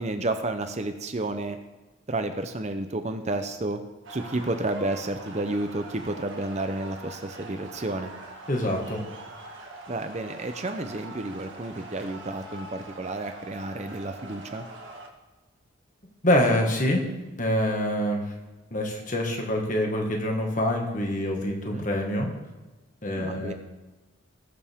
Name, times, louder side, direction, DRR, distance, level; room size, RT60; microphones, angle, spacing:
voice 1, 0.0-1.6 2.1-3.8 4.1-8.1 9.9-14.7 21.5-21.9 23.1-23.5, right 2 dB, 35° right, 7 dB, 0.7 m, -31 dB
sound 1, 4.0-15.1, right 2 dB, 70° right, 1.8 m, -43 dB
voice 2, 8.5-9.0 16.2-17.0 17.4-18.3 18.7-22.3 23.0-23.5, left 1 dB, 40° left, 1 dB, 1.9 m, -25 dB
19.5 x 7.0 x 3.6 m, 1.2 s
head